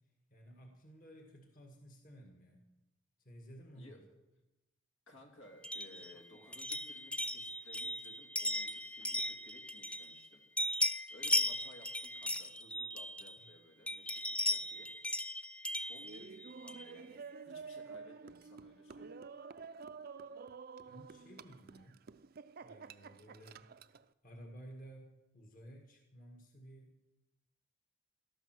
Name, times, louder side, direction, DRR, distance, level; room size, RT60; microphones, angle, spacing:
voice 1, 0.3-2.7 3.2-4.1 20.9-22.0 22.6-23.7 24.2-27.0, right 1 dB, 45° left, 2 dB, 1.8 m, -54 dB
voice 2, 5.1-10.4 11.1-14.9 15.8-19.2, left 1 dB, 85° left, 2 dB, 3.1 m, -59 dB
sound 1, 5.6-10.3 10.6-13.5 13.9-16.9, left 1 dB, 5° left, 0.5 m, -37 dB
Laughter, 15.9-24.0, right 5 dB, 50° right, 0.5 m, -50 dB
17.5 x 13.0 x 6.1 m, 1.0 s
head